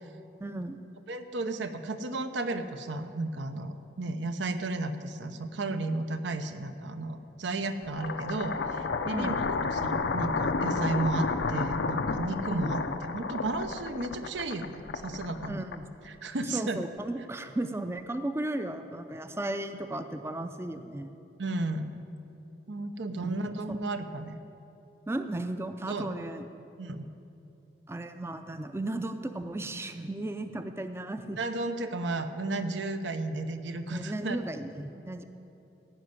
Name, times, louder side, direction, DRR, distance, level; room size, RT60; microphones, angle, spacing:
voice 1, 0.4-0.9 9.1-9.4 12.5-12.8 15.5-15.8 16.5-21.2 23.2-23.8 25.1-26.5 27.9-31.4 33.9-35.2, right 1 dB, 15° right, 8 dB, 0.4 m, -35 dB
voice 2, 1.1-9.4 9.7-15.5 16.0-16.8 21.4-21.9 22.7-24.4 25.9-26.1 26.8-27.1 31.4-34.4, right 2 dB, 85° right, 8 dB, 0.8 m, -33 dB
sound 1, 7.9-16.1, left 4 dB, 80° left, 0.6 m, -31 dB
16.0 x 5.5 x 9.5 m, 2.8 s
head